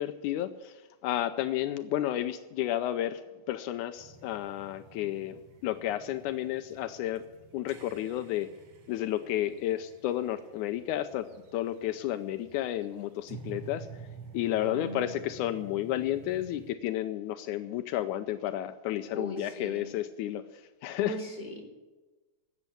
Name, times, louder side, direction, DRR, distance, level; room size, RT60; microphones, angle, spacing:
voice 1, 0.0-3.2 3.5-7.2 7.5-8.5 8.9-11.3 11.5-13.9 14.3-20.4 20.8-21.2, left 13 dB, 80° left, 10 dB, 2.0 m, -32 dB
sound 1, 4.0-16.7, right 5 dB, 60° right, 2.0 m, -50 dB
voice 2, 14.6-15.2 19.1-19.9 21.0-21.6, equal, 15° left, -2 dB, 3.5 m, -38 dB
13.5 x 8.2 x 9.9 m, 1.2 s
omnidirectional pair, 3.5 m